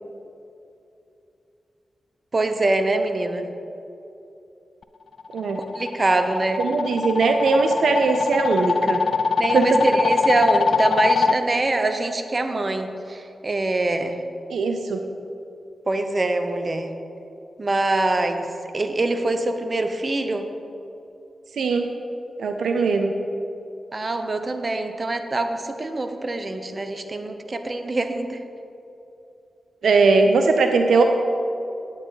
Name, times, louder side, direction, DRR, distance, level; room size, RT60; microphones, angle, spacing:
voice 1, 2.3-3.4 5.7-6.6 9.4-14.2 15.9-16.9 17.6-18.5 18.7-20.5 22.8-22.9 23.9-28.4, right 2 dB, 40° right, 7 dB, 0.8 m, -24 dB
sound 1, 5.2-11.4, left 5 dB, 75° left, 0.3 m, -23 dB
voice 2, 6.6-9.0 9.5-9.7 14.5-15.0 21.5-21.9 22.4-23.1 29.8-31.0, right 4 dB, 80° right, 5 dB, 0.5 m, -20 dB
9.8 x 8.7 x 4.0 m, 2.8 s
cardioid pair, 45°, 0 cm